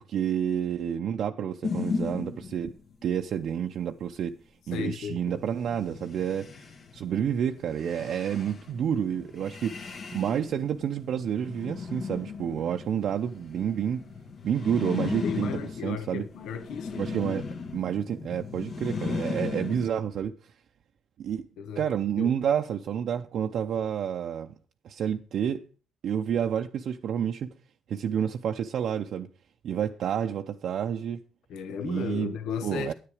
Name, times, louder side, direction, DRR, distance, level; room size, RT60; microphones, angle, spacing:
voice 1, 0.0-2.7 3.0-4.3 4.7-6.5 6.9-14.0 14.4-16.2 17.0-20.3 21.2-21.5 21.8-24.5 24.8-25.6 26.0-27.5 27.9-29.3 29.6-31.2 31.8-32.4 32.6-32.9, right 8 dB, 70° right, 0.6 m, -29 dB
sound 1, 1.6-2.9 5.5-19.9, left 4 dB, 55° left, 1.5 m, -36 dB
voice 2, 4.7-5.4 15.2-17.5 18.9-19.2 21.6-21.9 22.2-22.4 31.5-32.9, left 7 dB, 85° left, 1.0 m, -35 dB
9.9 x 9.6 x 4.9 m
cardioid pair, 90°, 0 cm